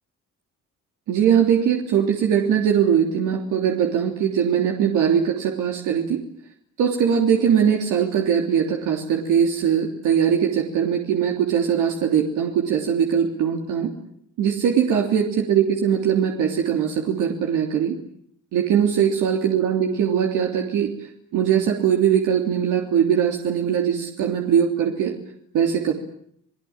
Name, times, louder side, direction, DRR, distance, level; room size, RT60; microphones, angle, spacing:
voice 1, 1.1-6.2 6.8-13.9 14.4-17.9 18.5-20.9 21.3-25.1 25.5-25.9, right 8 dB, 90° right, 1 dB, 3.4 m, -21 dB
29.5 x 20.0 x 8.9 m, 0.70 s
cardioid pair, 90°, 30 cm